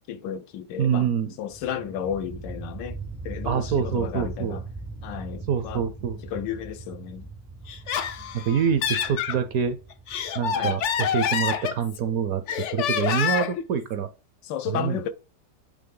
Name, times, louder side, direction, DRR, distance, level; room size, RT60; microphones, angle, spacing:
voice 1, 0.1-1.1 1.4-4.6 5.0-5.8 6.2-7.3 10.5-10.8 14.4-15.1, left 9 dB, 90° left, 1.3 m, -33 dB
voice 2, 0.8-1.3 3.5-4.6 5.5-6.2 8.3-9.8 10.3-14.1 14.7-15.0, right 8 dB, 70° right, 0.9 m, -26 dB
sound 1, 1.5-13.1, right 3 dB, 20° right, 0.4 m, -40 dB
Laughter, 7.7-9.4 9.9-12.1 12.5-13.6, left 8 dB, 70° left, 0.7 m, -27 dB
8.6 x 3.3 x 3.7 m
omnidirectional pair, 1.9 m